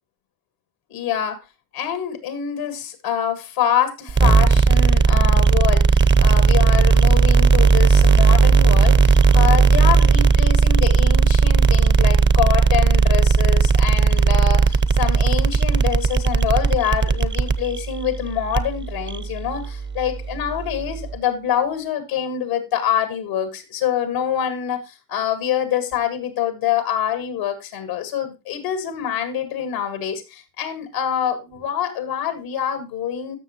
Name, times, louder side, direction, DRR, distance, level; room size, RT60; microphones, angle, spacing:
voice 1, 0.9-1.4 1.7-33.4, left 9 dB, 85° left, 10 dB, 1.7 m, -25 dB
sound 1, 4.1-21.2, right 5 dB, 25° right, 0.8 m, -16 dB
13.5 x 6.3 x 3.0 m, 0.25 s
hypercardioid pair, 60°, 43 cm